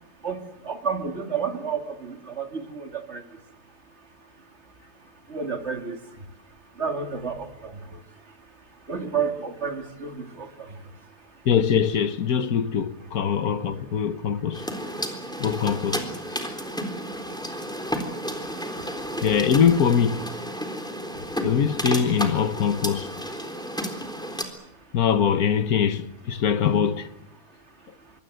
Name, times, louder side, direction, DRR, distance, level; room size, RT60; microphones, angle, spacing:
voice 1, 0.2-3.2 5.3-6.0 6.8-8.0 8.9-10.8 13.0-13.1 15.1-15.2 15.4-15.5 16.8-18.9, right 6 dB, 45° right, 3.1 m, -32 dB
voice 2, 11.4-14.6 15.4-16.0 16.3-16.5 19.2-20.2 21.4-23.1 24.9-27.1, left 7 dB, 80° left, 1.7 m, -22 dB
sound 1, 14.5-24.4, equal, 5° left, 3.7 m, -32 dB
25.0 x 24.5 x 7.8 m
omnidirectional pair, 1.6 m